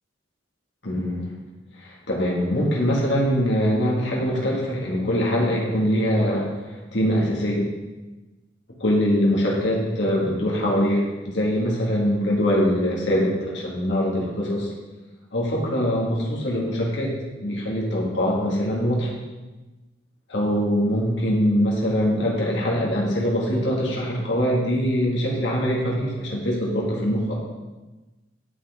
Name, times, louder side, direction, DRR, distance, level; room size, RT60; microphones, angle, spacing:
voice 1, 0.8-1.3 1.8-6.5 6.9-7.7 8.8-14.7 15.3-17.1 17.4-19.1 20.3-27.3, equal, 70° left, -4 dB, 2.2 m, -23 dB
11.0 x 5.7 x 3.7 m, 1.2 s
head